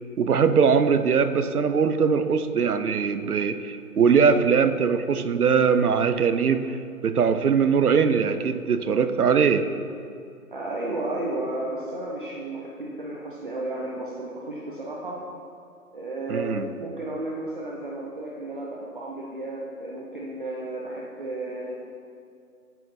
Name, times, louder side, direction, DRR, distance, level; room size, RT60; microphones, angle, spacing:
voice 1, 0.2-6.8 7.0-9.6 16.3-16.7, right 6 dB, 70° right, 10 dB, 0.7 m, -21 dB
voice 2, 10.5-15.2 15.9-21.8, right 2 dB, 35° right, -4 dB, 0.7 m, -33 dB
9.0 x 5.7 x 4.2 m, 2.4 s
figure-of-eight pair, 155°, 46 cm